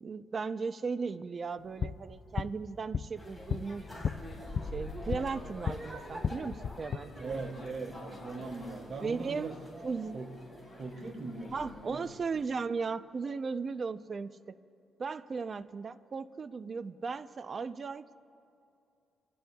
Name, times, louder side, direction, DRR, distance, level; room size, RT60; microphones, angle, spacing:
voice 1, 0.0-3.8 4.7-7.4 9.0-9.6 9.8-10.1 11.5-14.6 15.0-18.1, right 5 dB, 40° right, 13 dB, 0.5 m, -36 dB
sound 1, 1.6-5.8 6.1-7.0, left 7 dB, 50° left, 0.4 m, -36 dB
sound 2, 3.2-12.4, left 1 dB, ahead, 4.2 m, -46 dB
voice 2, 7.2-9.5 10.1-10.3 10.7-12.0, right 3 dB, 55° right, 1 dB, 2.6 m, -40 dB
28.5 x 17.0 x 2.3 m, 2.6 s
cardioid pair, 90°, 0 cm